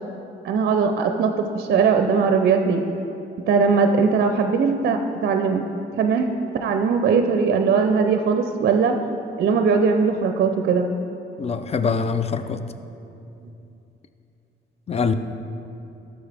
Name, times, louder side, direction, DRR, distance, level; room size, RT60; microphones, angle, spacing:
voice 1, 0.4-2.8 3.5-5.7 6.0-6.3 6.6-9.0 9.4-10.9, right 5 dB, 55° right, 6 dB, 0.5 m, -20 dB
voice 2, 11.4-12.6 14.9-15.1, left 5 dB, 30° left, 11 dB, 0.5 m, -23 dB
13.0 x 6.1 x 3.4 m, 2.8 s
cardioid pair, 90°, 20 cm